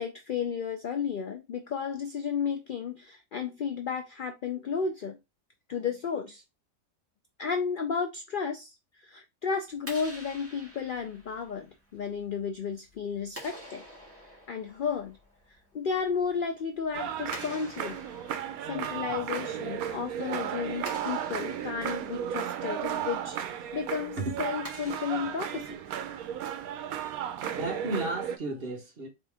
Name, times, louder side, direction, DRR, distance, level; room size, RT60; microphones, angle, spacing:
voice 1, 0.0-5.2 5.7-6.4 7.4-13.8 14.5-15.2 15.5-18.0 18.7-23.4 23.7-25.8, left 6 dB, 80° left, 0.4 m, -33 dB
Clapping, 9.7-26.4, equal, 10° right, 1.5 m, -49 dB
sound 1, 16.9-28.4, right 9 dB, 80° right, 1.1 m, -34 dB
voice 2, 27.6-29.1, right 2 dB, 45° right, 1.2 m, -33 dB
4.0 x 3.0 x 3.4 m
omnidirectional pair, 1.5 m